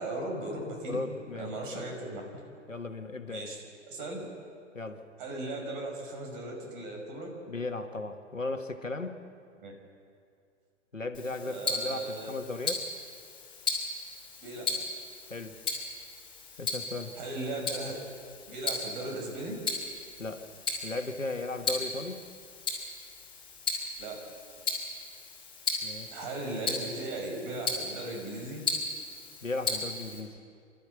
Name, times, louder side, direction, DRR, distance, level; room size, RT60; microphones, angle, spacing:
voice 1, 0.0-1.0 1.3-2.2 3.3-3.6 3.9-4.2 5.2-7.3 9.6-9.7 11.4-12.3 14.4-14.7 17.2-17.9 18.5-19.6 24.0-24.2 26.1-28.6, right 2 dB, 40° right, 1 dB, 5.8 m, -37 dB
voice 2, 0.9-1.9 2.7-3.5 4.7-5.0 7.5-9.2 10.9-12.9 15.3-15.6 16.6-17.1 20.2-20.5 20.8-22.2 25.8-26.2 29.4-30.4, left 3 dB, 90° left, 7 dB, 1.6 m, -36 dB
Tick-tock, 11.1-30.2, left 3 dB, 15° left, 5.1 m, -36 dB
28.0 x 13.0 x 8.3 m, 2.3 s
figure-of-eight pair, 110°, 38 cm